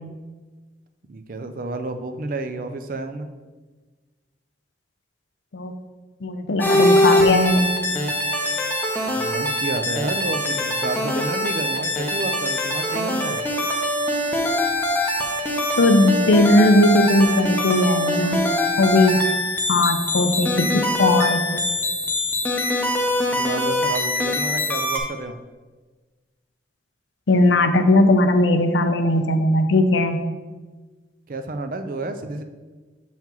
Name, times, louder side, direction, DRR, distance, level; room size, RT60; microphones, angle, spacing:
voice 1, 1.1-3.3 9.2-13.5 23.3-25.3 31.3-32.4, right 2 dB, 45° right, 8 dB, 0.4 m, -30 dB
voice 2, 6.2-7.7 15.8-18.5 18.8-19.3 19.7-21.8 27.3-30.3, left 1 dB, 80° left, 8 dB, 0.5 m, -18 dB
sound 1, 6.6-25.0, left 1 dB, 10° left, 0.6 m, -23 dB
7.2 x 5.6 x 3.0 m, 1.3 s
head